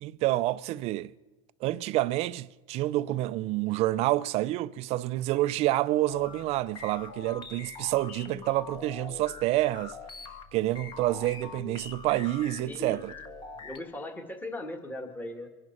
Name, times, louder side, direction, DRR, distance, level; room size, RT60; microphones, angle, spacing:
voice 1, 0.0-1.1 1.6-10.0 10.5-13.0, right 16 dB, 40° right, 0.4 m, -28 dB
sound 1, 6.1-13.8, left 4 dB, 30° left, 1.2 m, -44 dB
voice 2, 12.6-13.0 13.5-15.5, left 1 dB, 10° left, 1.6 m, -38 dB
24.5 x 10.5 x 4.4 m
supercardioid pair, 130°, 16 cm